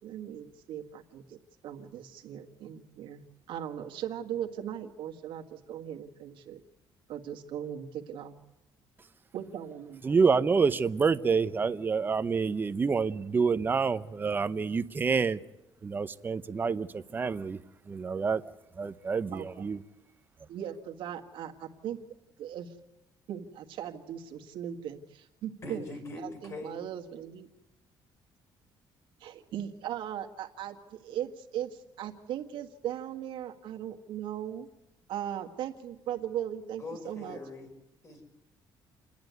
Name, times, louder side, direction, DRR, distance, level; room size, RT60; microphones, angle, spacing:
voice 1, 0.0-6.6 7.1-8.4 9.3-10.0 19.3-19.7 20.5-22.0 22.4-22.7 23.3-25.9 26.2-27.5 29.2-34.7 35.1-37.4, right 10 dB, 75° right, 3 dB, 1.7 m, -38 dB
voice 2, 10.0-15.4 15.8-16.9 17.1-17.6 17.9-18.4 18.8-19.8, right 5 dB, 25° right, 12 dB, 0.7 m, -27 dB
voice 3, 25.6-26.7 36.8-37.7 38.0-38.2, left 2 dB, 35° left, 3 dB, 5.5 m, -41 dB
29.0 x 10.5 x 9.4 m, 0.98 s
cardioid pair, 140°, 9 cm